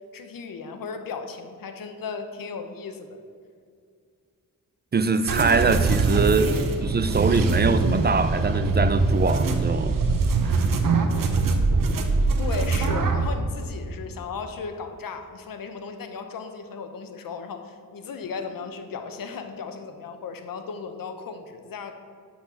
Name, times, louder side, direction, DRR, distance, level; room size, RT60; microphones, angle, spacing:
voice 1, 0.1-3.2 6.5-6.6 12.4-21.9, left 5 dB, 85° left, 7 dB, 0.9 m, -36 dB
voice 2, 4.9-6.5 6.8-10.0 10.4-10.6, right 4 dB, 30° right, 12 dB, 0.4 m, -23 dB
sound 1, 5.3-13.3, right 3 dB, 80° right, 1.0 m, -23 dB
10.5 x 4.3 x 7.3 m, 2.2 s
wide cardioid pair, 95°, 33 cm